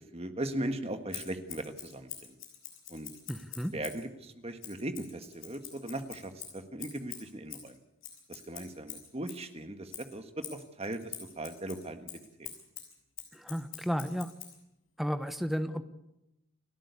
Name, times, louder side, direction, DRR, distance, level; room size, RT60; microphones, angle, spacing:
voice 1, 0.1-2.4 2.9-3.1 3.7-7.8 8.3-12.1 12.4-12.5, right 1 dB, 30° right, 8 dB, 1.6 m, -38 dB
Scissors, 1.1-4.0 4.6-9.5 9.9-14.6, left 10 dB, 65° left, 6.7 m, -46 dB
voice 2, 3.3-3.7 13.3-14.3 15.0-15.8, equal, ahead, 9 dB, 1.0 m, -33 dB
29.5 x 13.0 x 8.3 m, 0.89 s
head